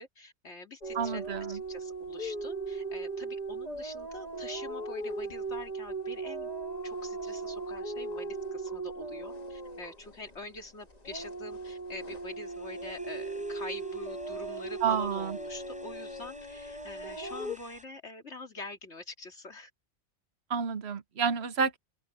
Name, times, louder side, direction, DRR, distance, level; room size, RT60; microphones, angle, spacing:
voice 1, 0.0-1.2 1.5-6.5 6.8-19.7, left 2 dB, 80° left, 3.2 m, -45 dB
sound 1, 0.8-10.6 10.9-17.6, right 3 dB, 35° left, 1.7 m, -38 dB
voice 2, 0.9-1.6 14.8-15.4 20.5-21.8, right 6 dB, 65° right, 1.2 m, -29 dB
sound 2, 11.1-17.9, equal, 5° right, 8.0 m, -57 dB
open air
omnidirectional pair, 1.2 m